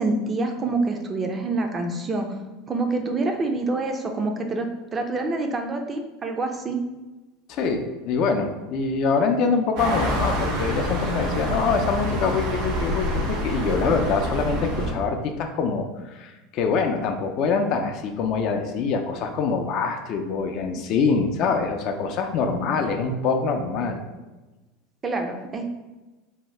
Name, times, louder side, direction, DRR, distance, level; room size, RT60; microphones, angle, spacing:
voice 1, 0.0-2.4 2.7-6.8 25.0-25.7, right 3 dB, 25° right, 4 dB, 0.4 m, -26 dB
voice 2, 7.5-24.0, left 5 dB, 55° left, 5 dB, 0.4 m, -24 dB
sound 1, 9.8-14.9, equal, 75° right, 0.9 m, -27 dB
2.7 x 2.2 x 3.2 m, 1.1 s
supercardioid pair, 105°, 0 cm